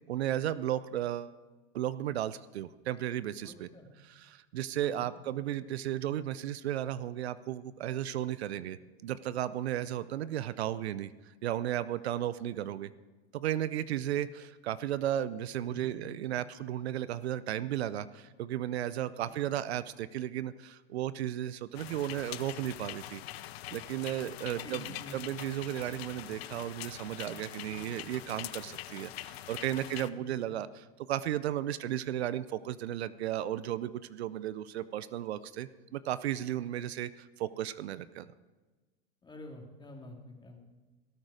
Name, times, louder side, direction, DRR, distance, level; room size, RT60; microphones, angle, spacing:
voice 1, 0.1-1.3 1.7-3.7 4.0-11.1 11.4-12.9 13.3-23.2 23.7-38.3, right 12 dB, 80° right, 16 dB, 0.6 m, -34 dB
voice 2, 3.4-3.9 4.8-5.1 15.7-16.1 19.2-19.3 24.6-25.4 27.6-27.9 29.9-30.2 36.5-36.6 39.2-40.6, left 1 dB, 15° left, 2 dB, 2.6 m, -48 dB
sound 1, 21.7-30.1, left 14 dB, 70° left, 0.7 m, -44 dB
17.5 x 9.0 x 5.0 m, 1.3 s
hypercardioid pair, 100°, 32 cm